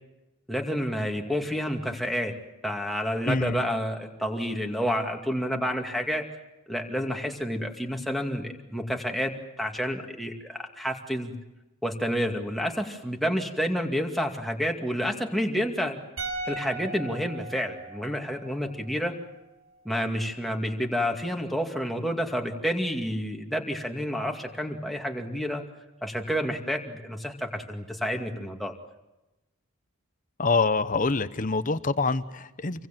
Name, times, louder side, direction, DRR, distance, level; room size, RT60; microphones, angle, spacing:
voice 1, 0.5-2.3 2.6-6.2 6.7-11.3 11.8-16.0 16.5-19.1 19.8-25.6 26.0-28.7, equal, ahead, 2 dB, 2.3 m, -29 dB
voice 2, 3.2-3.6 30.4-32.9, left 3 dB, 35° left, 13 dB, 1.0 m, -25 dB
sound 1, 16.2-19.4 19.6-19.8, right 2 dB, 70° right, 6.5 m, -38 dB
27.5 x 23.5 x 7.6 m, 1.0 s
head